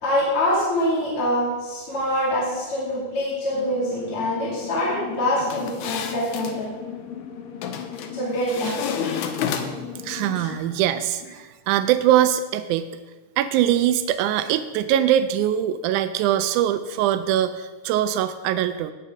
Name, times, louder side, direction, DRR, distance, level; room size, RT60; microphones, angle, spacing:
voice 1, 0.0-6.7 8.1-9.3 10.4-10.5, left 1 dB, 50° left, -7 dB, 3.3 m, -25 dB
sound 1, 3.5-10.6, left 7 dB, 65° left, 1.5 m, -38 dB
sound 2, 5.4-6.6 7.6-8.1 8.5-10.0, left 7 dB, 85° left, 2.1 m, -30 dB
voice 2, 10.0-12.9 13.4-18.9, right 11 dB, 85° right, 11 dB, 2.0 m, -22 dB
17.5 x 6.4 x 3.6 m, 1.2 s
omnidirectional pair, 3.4 m